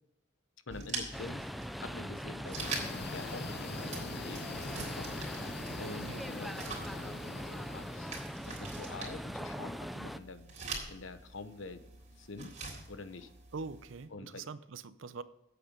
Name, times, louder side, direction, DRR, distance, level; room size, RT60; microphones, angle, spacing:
voice 1, 0.7-2.6 3.1-5.1 5.8-10.5 10.9-11.8 12.2-12.5 12.9-13.3 14.1-14.4, left 3 dB, 75° left, 11 dB, 0.9 m, -46 dB
sound 1, 0.7-14.0, right 4 dB, 40° right, 3.5 m, -45 dB
sound 2, 1.1-10.2, equal, ahead, 0.3 m, -41 dB
sound 3, 2.6-8.3, left 4 dB, 55° left, 0.6 m, -44 dB
voice 2, 13.5-15.2, right 4 dB, 75° right, 15 dB, 0.6 m, -43 dB
8.8 x 8.2 x 5.2 m, 0.82 s
head